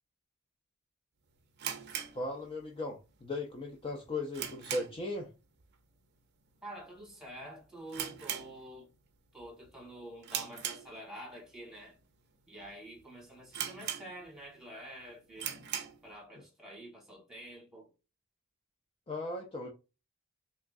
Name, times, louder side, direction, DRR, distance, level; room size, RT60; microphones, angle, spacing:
sound 1, 1.6-2.9 3.2-3.3 3.8-5.2 5.5-5.8 6.0-6.1 6.8-7.1 7.4-7.5 7.9-9.1 9.4-9.7 10.2-11.4 11.9-12.0 12.6-12.7 13.0-13.1 13.5-14.5 14.9-15.0 15.3-16.1, right 9 dB, 50° right, 0.5 m, -39 dB
voice 1, 2.1-5.3 19.1-19.7, left 2 dB, 25° left, 0.4 m, -37 dB
voice 2, 6.6-8.9 9.3-12.0 12.5-15.6 16.0-17.9, right 1 dB, ahead, 1.4 m, -48 dB
3.5 x 3.0 x 2.5 m
head